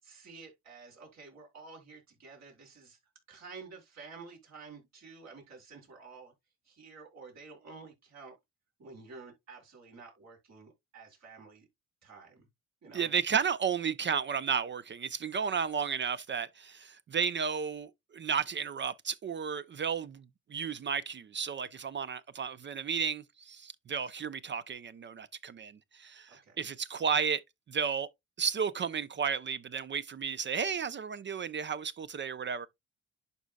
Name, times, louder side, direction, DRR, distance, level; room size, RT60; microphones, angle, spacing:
voice 1, 0.0-3.0 3.3-6.3 6.6-8.3 8.8-11.7 12.0-12.5 12.8-13.1 26.3-26.6, right 4 dB, 60° right, 5.0 m, -51 dB
voice 2, 12.9-20.2 20.5-27.4 27.7-28.1 28.4-32.7, right 6 dB, 40° right, 0.5 m, -33 dB
11.5 x 4.1 x 2.2 m
cardioid pair, 90°, 30 cm